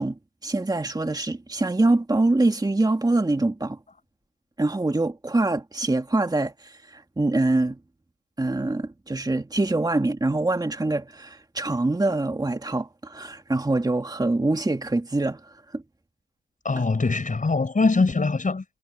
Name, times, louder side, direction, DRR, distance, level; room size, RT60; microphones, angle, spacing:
voice 1, 0.0-3.8 4.6-7.8 8.4-15.4 15.7-15.8, right 2 dB, 15° right, 2.3 m, -24 dB
voice 2, 16.6-18.6, left 3 dB, 25° left, 5.7 m, -22 dB
cardioid pair, 90°, 30 cm